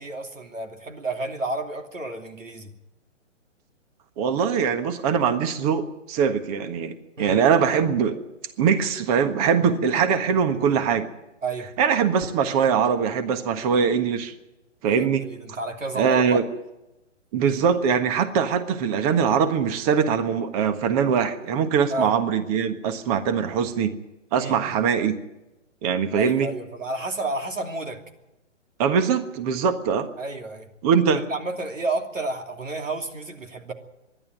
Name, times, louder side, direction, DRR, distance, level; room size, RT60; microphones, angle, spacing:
voice 1, 0.0-2.7 7.2-7.4 11.4-11.7 14.9-16.4 17.5-17.6 21.9-22.1 24.3-24.6 26.2-28.0 30.2-30.7 31.3-33.7, right 2 dB, 85° right, 4 dB, 2.9 m, -31 dB
voice 2, 4.2-8.2 8.6-11.1 11.8-14.3 14.8-15.3 15.9-16.4 17.3-24.0 24.3-25.1 25.8-26.5 28.8-30.1 30.8-31.2, right 7 dB, 30° right, 9 dB, 1.5 m, -22 dB
25.0 x 11.5 x 9.2 m, 0.95 s
figure-of-eight pair, 135°, 37 cm